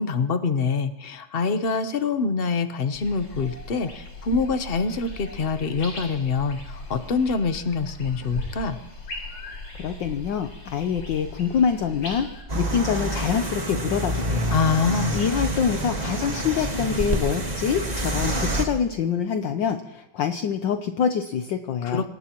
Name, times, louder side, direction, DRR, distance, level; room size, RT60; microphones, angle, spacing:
voice 1, 0.0-8.8 14.5-15.2 21.8-22.1, left 4 dB, 45° left, 9 dB, 0.7 m, -25 dB
sound 1, 2.9-12.4, left 2 dB, 85° left, 5.7 m, -38 dB
voice 2, 9.8-12.3 12.5-14.5 15.1-22.0, left 7 dB, 65° left, 7 dB, 1.4 m, -25 dB
sound 2, 12.5-18.6, right 1 dB, 20° right, 1.5 m, -27 dB
26.0 x 18.5 x 3.0 m, 0.93 s
omnidirectional pair, 2.3 m